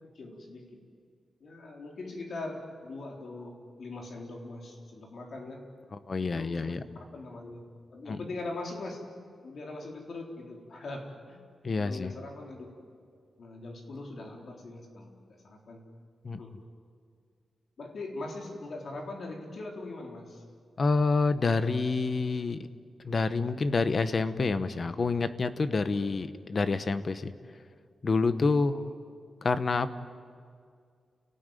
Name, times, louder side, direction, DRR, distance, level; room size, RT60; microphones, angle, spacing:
voice 1, 0.1-0.8 1.4-5.7 6.3-6.8 7.1-7.6 7.9-9.1 9.4-11.4 11.8-12.7 13.4-15.8 16.4-16.5 17.8-20.4 26.0-26.2 28.5-28.9, left 2 dB, 50° left, 1 dB, 4.0 m, -41 dB
voice 2, 6.1-6.8 8.1-8.2 11.6-12.1 16.2-16.4 20.8-22.6 23.0-27.3 28.0-28.7 29.4-29.9, left 4 dB, 35° left, 12 dB, 1.0 m, -27 dB
29.5 x 18.5 x 9.2 m, 2.2 s
wide cardioid pair, 180°, 0 cm